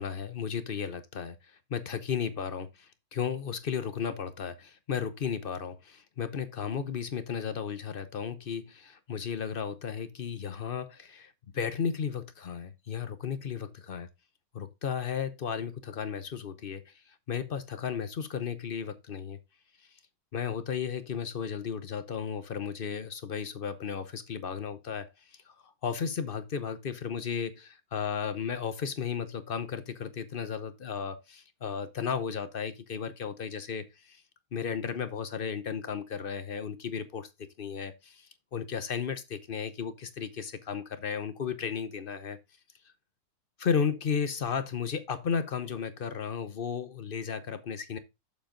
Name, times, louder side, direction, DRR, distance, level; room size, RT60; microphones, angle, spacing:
voice 1, 0.0-14.1 14.5-19.4 19.8-20.0 20.3-34.2 34.5-37.3 37.6-42.4 43.6-48.0, left 7 dB, 55° left, 0.6 m, -34 dB
7.2 x 7.1 x 3.7 m
omnidirectional pair, 2.0 m